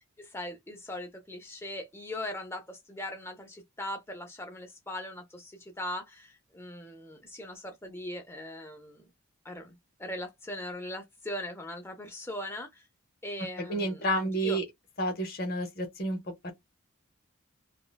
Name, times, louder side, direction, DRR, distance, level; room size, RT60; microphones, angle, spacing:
voice 1, 0.2-9.1 9.4-12.8 13.2-14.6, left 1 dB, 10° left, 0.6 m, -40 dB
voice 2, 13.7-14.6 15.0-16.2, right 1 dB, 45° left, 0.7 m, -30 dB
3.1 x 2.1 x 2.2 m
head